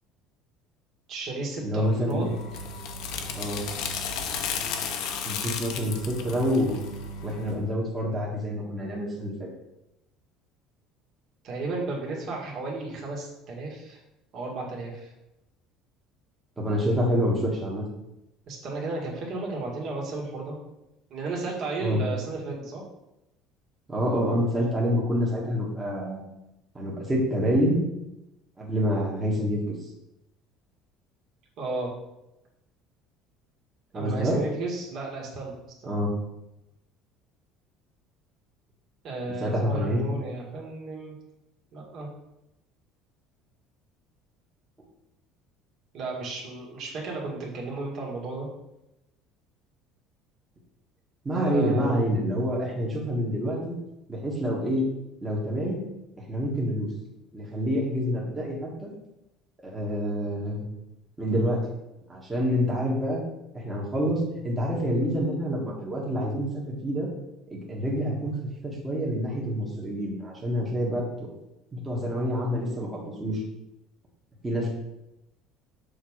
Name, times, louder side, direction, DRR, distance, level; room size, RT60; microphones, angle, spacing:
voice 1, 1.1-2.3 11.4-14.0 14.3-15.1 18.5-20.6 21.1-22.8 31.6-31.9 33.9-35.9 39.0-41.1 41.7-42.1 45.9-48.5 51.3-52.1, right 3 dB, 45° right, -3 dB, 2.1 m, -33 dB
voice 2, 1.6-2.3 3.3-3.6 5.2-6.8 7.2-9.5 16.6-17.8 21.8-22.0 23.9-26.2 26.7-27.8 28.6-29.6 33.9-34.4 35.9-36.1 39.4-40.1 51.2-53.7 54.1-54.8 55.2-55.8 56.3-56.9 57.3-58.9 59.6-60.6 61.2-61.6 62.1-63.2 63.5-67.1 67.5-68.4 68.6-71.3 71.7-73.4 74.4-74.7, equal, 15° right, -4 dB, 1.6 m, -27 dB
sound 1, 2.1-7.6, left 5 dB, 65° left, 0.9 m, -33 dB
6.6 x 3.7 x 6.3 m, 0.89 s
cardioid pair, 155°, 0 cm